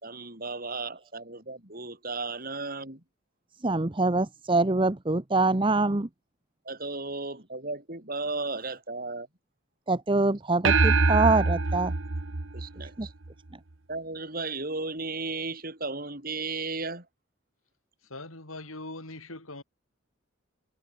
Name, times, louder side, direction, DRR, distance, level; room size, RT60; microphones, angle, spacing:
voice 1, 0.0-3.0 6.6-9.3 12.5-13.1 13.9-17.0, right 3 dB, 45° right, 6.3 m, -35 dB
voice 2, 3.6-6.1 9.9-11.9 13.0-13.1, right 3 dB, 25° right, 0.9 m, -24 dB
sound 1, 10.6-13.3, right 3 dB, 65° right, 1.2 m, -24 dB
voice 3, 18.0-19.6, left 2 dB, 85° left, 7.7 m, -41 dB
head